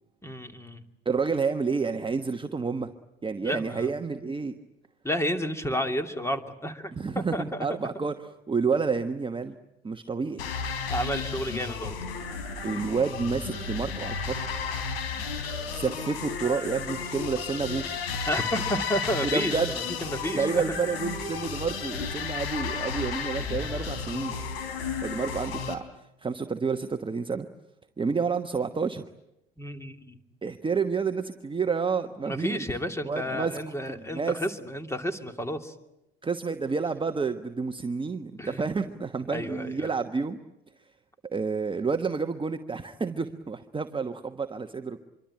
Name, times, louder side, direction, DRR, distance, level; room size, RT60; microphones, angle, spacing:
voice 1, 0.2-0.8 3.4-3.9 5.0-6.9 7.3-7.7 10.9-11.9 18.3-19.6 20.0-20.6 29.6-30.2 32.2-35.7 38.4-38.6 39.3-39.9, equal, 10° left, 7 dB, 2.7 m, -31 dB
voice 2, 1.0-2.9 3.2-4.6 6.9-9.5 9.8-10.4 12.6-14.3 15.7-17.9 19.2-19.7 20.3-24.4 25.0-25.8 26.2-27.5 28.0-29.0 30.4-32.7 33.0-33.6 33.9-34.4 36.2-40.4 41.2-45.0, right 5 dB, 15° right, 7 dB, 1.2 m, -29 dB
sound 1, 10.4-25.8, left 5 dB, 75° left, 3.6 m, -33 dB
26.0 x 23.5 x 8.9 m, 0.88 s
hypercardioid pair, 70°, 30 cm